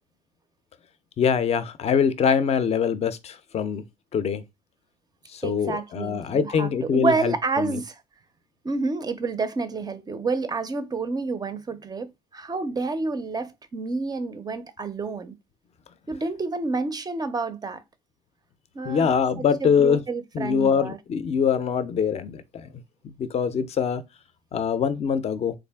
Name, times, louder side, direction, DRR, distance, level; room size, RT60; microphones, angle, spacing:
voice 1, 1.2-3.8 4.1-4.4 5.3-7.8 18.8-20.0 20.3-22.7 23.0-24.0 24.5-25.5, left 7 dB, 40° left, 0.5 m, -23 dB
voice 2, 5.4-8.0 8.6-15.4 16.1-17.8 18.7-19.1 19.4-21.0, right 3 dB, 25° right, 0.5 m, -29 dB
3.6 x 2.5 x 3.4 m
cardioid pair, 110°, 17 cm